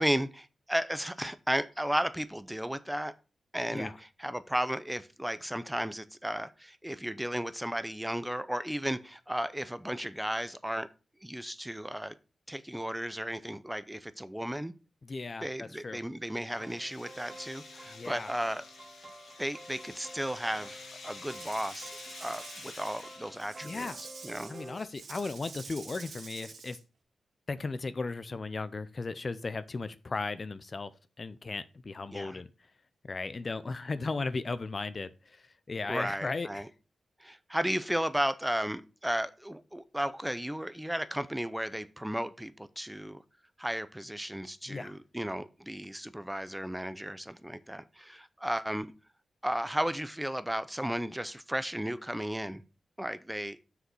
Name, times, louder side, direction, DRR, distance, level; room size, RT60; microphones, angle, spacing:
voice 1, 0.0-3.1 3.5-3.9 4.2-10.9 11.2-12.1 12.5-14.7 15.4-18.6 19.4-21.9 22.2-24.5 32.1-32.4 35.9-36.7 37.2-43.2 43.6-48.9 49.4-52.6 53.0-53.6, equal, 5° right, 0.5 m, -34 dB
voice 2, 15.0-16.0 17.9-18.3 23.6-24.0 24.5-26.8 27.5-30.9 31.2-32.5 33.1-36.6 44.7-44.9, left 3 dB, 40° left, 0.5 m, -36 dB
sound 1, 15.9-23.6, left 4 dB, 80° left, 2.0 m, -49 dB
sound 2, 16.5-24.8, right 2 dB, 30° right, 1.8 m, -50 dB
Rattle / Rattle (instrument), 21.2-26.8, right 4 dB, 70° right, 1.8 m, -48 dB
6.4 x 4.9 x 6.1 m
wide cardioid pair, 100°, 0 cm